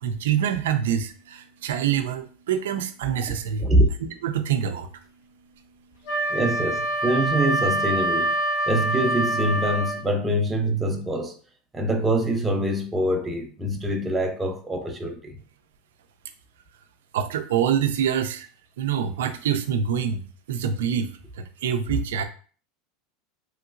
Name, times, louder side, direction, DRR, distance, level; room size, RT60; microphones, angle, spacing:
voice 1, 0.0-3.7 4.0-4.9 17.1-18.5 18.8-21.1 21.4-22.2, right 8 dB, 85° right, 0.4 m, -26 dB
Wind instrument woodwind instrument, 6.1-10.0, right 1 dB, 75° left, 1.1 m, -25 dB
voice 2, 6.3-8.3 8.7-11.4 11.7-15.4, right 1 dB, 15° right, 0.7 m, -24 dB
3.1 x 2.8 x 2.5 m
supercardioid pair, 105°, 0 cm